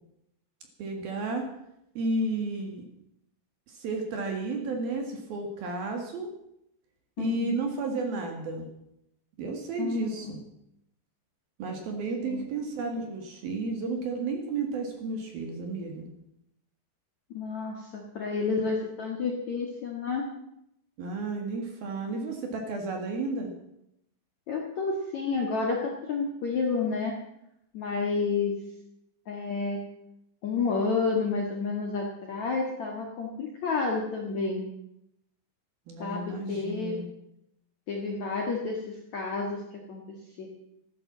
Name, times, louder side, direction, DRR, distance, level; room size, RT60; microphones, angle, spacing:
voice 1, 0.8-1.4 1.9-2.8 3.7-6.3 7.2-8.7 9.4-10.4 11.6-16.1 21.0-23.5 35.9-37.1, right 3 dB, 55° right, 3 dB, 3.2 m, -32 dB
voice 2, 7.2-7.6 9.8-10.3 12.2-12.4 17.3-20.2 24.5-27.1 27.7-28.5 29.3-29.8 30.4-34.6 36.0-37.0 37.9-40.5, left 4 dB, 55° left, 0 dB, 2.1 m, -30 dB
14.5 x 12.0 x 7.3 m, 0.79 s
omnidirectional pair, 5.8 m